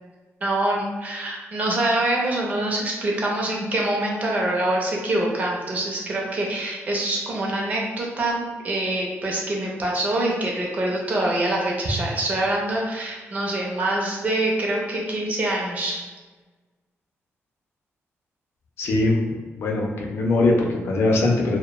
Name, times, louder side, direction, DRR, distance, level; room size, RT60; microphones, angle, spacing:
voice 1, 0.4-16.0, right 1 dB, 35° right, -2 dB, 0.5 m, -25 dB
voice 2, 18.8-21.6, left 2 dB, 60° left, 0 dB, 0.4 m, -21 dB
2.8 x 2.1 x 2.2 m, 1.3 s
wide cardioid pair, 160°, 5 cm